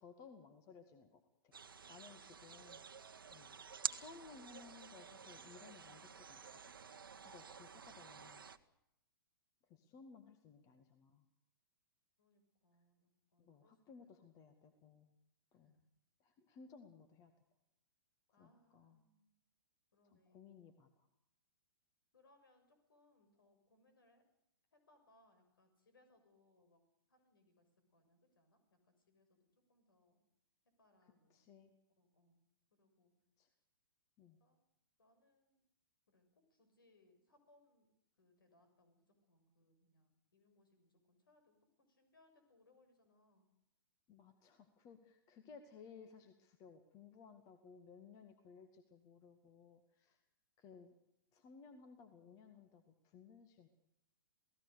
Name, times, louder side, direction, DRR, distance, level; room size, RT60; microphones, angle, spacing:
voice 1, 0.0-1.5 1.9-2.8 3.3-3.6 3.9-6.6 7.2-8.4 9.7-11.2 13.4-15.1 15.5-15.8 16.2-17.3 18.4-19.0 20.0-21.1 31.3-31.7 33.4-33.5 34.2-34.4 44.1-50.2 50.6-50.9 51.3-53.7, left 5 dB, 30° left, 8 dB, 2.0 m, -59 dB
sound 1, 1.5-8.6, right 6 dB, 70° right, 1.3 m, -49 dB
voice 2, 12.2-13.8 15.7-15.8 18.3-19.3 19.9-20.5 22.1-24.2 24.7-26.8 27.1-27.6 27.9-30.2 30.8-31.5 32.0-32.4 32.7-33.1 34.4-34.6 35.0-35.7 36.1-37.9 38.2-41.6 41.9-43.5, left 2 dB, 65° left, 7 dB, 6.8 m, -73 dB
28.0 x 18.0 x 6.8 m, 0.82 s
figure-of-eight pair, 110°, 12 cm